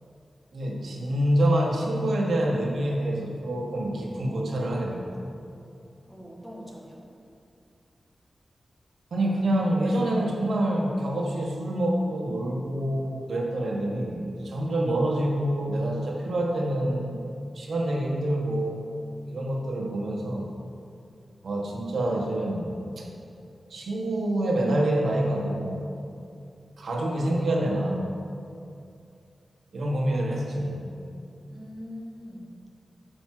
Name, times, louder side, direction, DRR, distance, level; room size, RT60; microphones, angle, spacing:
voice 1, 0.5-5.3 9.1-17.2 17.5-18.8 19.3-20.5 21.4-23.0 23.7-25.8 26.8-28.0 29.7-30.8, right 1 dB, 80° right, -1 dB, 1.4 m, -26 dB
voice 2, 6.1-7.1 31.5-32.7, equal, 5° left, -3 dB, 1.5 m, -42 dB
9.1 x 5.2 x 7.5 m, 2.5 s
wide cardioid pair, 150°, 0 cm